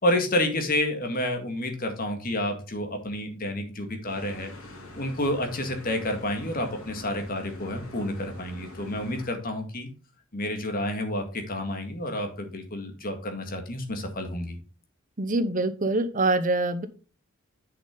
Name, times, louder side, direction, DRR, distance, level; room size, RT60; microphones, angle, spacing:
voice 1, 0.0-9.9 10.3-14.6, left 1 dB, 40° left, 5 dB, 1.9 m, -29 dB
sound 1, 4.1-9.3, left 1 dB, 90° left, 2.8 m, -44 dB
voice 2, 15.2-16.9, right 2 dB, 40° right, 12 dB, 0.8 m, -25 dB
7.8 x 6.8 x 3.8 m, 0.35 s
head